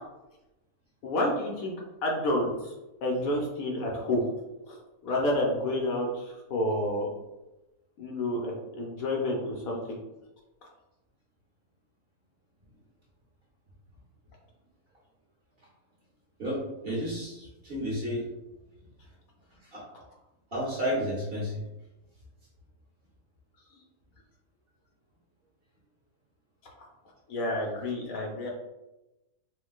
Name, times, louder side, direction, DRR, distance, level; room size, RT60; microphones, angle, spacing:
voice 1, 1.0-2.7 3.0-4.3 4.6-4.8 5.0-7.1 8.0-10.0 27.3-28.5, left 1 dB, 70° left, -1 dB, 1.1 m, -29 dB
voice 2, 16.4-18.2 19.7-19.8 20.5-21.6, equal, 45° right, -5 dB, 1.1 m, -31 dB
4.3 x 2.3 x 2.3 m, 1.0 s
omnidirectional pair, 1.6 m